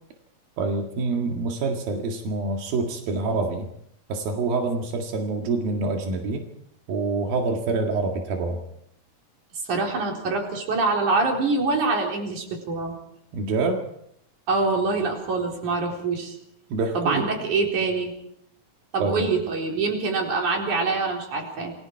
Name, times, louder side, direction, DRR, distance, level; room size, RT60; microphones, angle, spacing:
voice 1, 0.6-3.7 4.1-6.4 6.9-8.6 13.3-13.8 16.7-17.3 19.0-19.3, right 3 dB, 90° right, 2 dB, 3.8 m, -26 dB
voice 2, 9.7-12.9 14.5-16.4 16.9-18.1 18.9-21.7, right 3 dB, 60° right, 1 dB, 5.5 m, -25 dB
28.5 x 21.5 x 4.7 m, 0.73 s
omnidirectional pair, 4.0 m